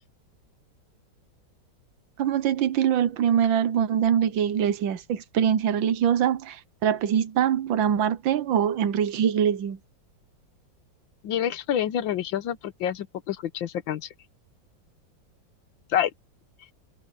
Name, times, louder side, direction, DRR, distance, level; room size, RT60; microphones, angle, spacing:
voice 1, 2.2-6.6 6.8-9.8, right 9 dB, 85° right, 1.7 m, -23 dB
voice 2, 11.2-14.1 15.9-16.1, left 10 dB, 90° left, 1.7 m, -27 dB
omnidirectional pair, 2.0 m